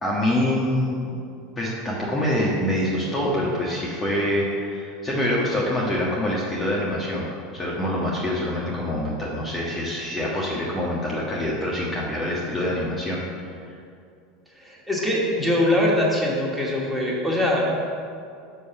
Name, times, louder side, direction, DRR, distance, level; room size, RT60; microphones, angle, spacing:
voice 1, 0.0-1.2 1.6-7.3 7.5-13.2 13.7-13.8, left 1 dB, 20° left, -5 dB, 1.5 m, -25 dB
voice 2, 14.6-17.6, left 1 dB, ahead, -4 dB, 2.2 m, -22 dB
6.5 x 5.6 x 6.7 m, 2.4 s
hypercardioid pair, 85°, 0 cm